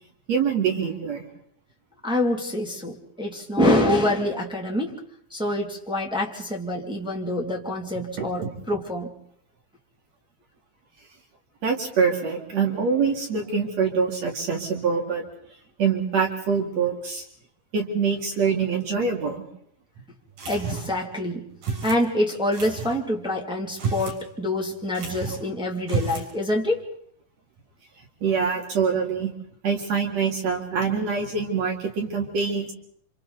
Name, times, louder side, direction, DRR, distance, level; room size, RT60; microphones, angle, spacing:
voice 1, 0.3-1.2 8.2-8.5 11.6-15.2 15.8-17.2 17.7-19.4 28.2-29.3 29.6-32.7, right 5 dB, 50° right, 1 dB, 3.3 m, -25 dB
voice 2, 2.0-5.0 5.3-9.1 20.5-21.4 21.8-26.8, left 1 dB, ahead, -1 dB, 1.7 m, -26 dB
sound 1, 20.4-21.0 21.6-22.0 22.5-23.0 23.7-24.2 24.5-24.6 24.9-25.5 25.8-26.3, right 5 dB, 85° right, 6.2 m, -30 dB
29.0 x 26.5 x 4.0 m, 0.65 s
omnidirectional pair, 4.0 m